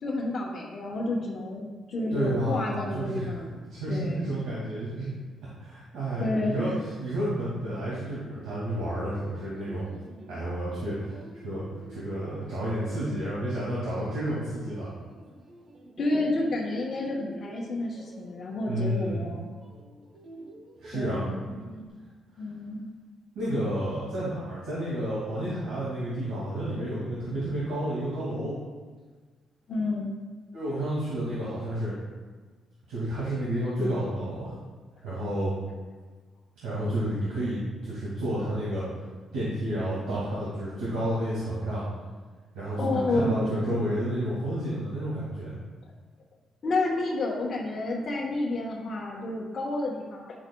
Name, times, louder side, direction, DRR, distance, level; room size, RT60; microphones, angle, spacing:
voice 1, 0.0-3.6 3.9-4.4 6.2-6.8 16.0-19.5 20.9-21.5 22.4-22.9 29.7-30.2 42.8-43.8 46.6-50.4, left 2 dB, 50° left, -4 dB, 1.1 m, -30 dB
voice 2, 2.1-3.3 3.7-5.1 5.6-6.7 7.0-9.8 10.3-11.2 11.4-11.6 11.9-14.9 18.7-19.3 20.8-21.3 23.4-28.6 30.5-31.9 32.9-34.5 35.0-35.5 36.6-38.8 39.3-41.9 42.5-45.5, right 1 dB, 90° right, -9 dB, 2.1 m, -30 dB
sound 1, 8.1-21.9, right 2 dB, 50° right, 1.0 m, -48 dB
9.7 x 6.2 x 2.3 m, 1.4 s
cardioid pair, 90°, 0 cm